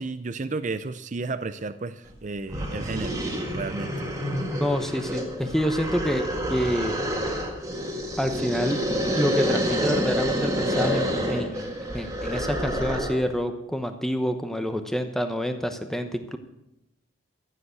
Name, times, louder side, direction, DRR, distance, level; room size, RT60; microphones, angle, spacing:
voice 1, 0.0-3.2 3.5-3.9, right 3 dB, 35° right, 11 dB, 0.5 m, -32 dB
sound 1, 2.1-2.2 2.5-13.3, equal, 15° right, 1.9 m, -28 dB
voice 2, 4.5-6.9 8.2-8.8 9.1-16.4, equal, ahead, 7 dB, 0.9 m, -27 dB
14.5 x 8.0 x 8.2 m, 0.86 s
head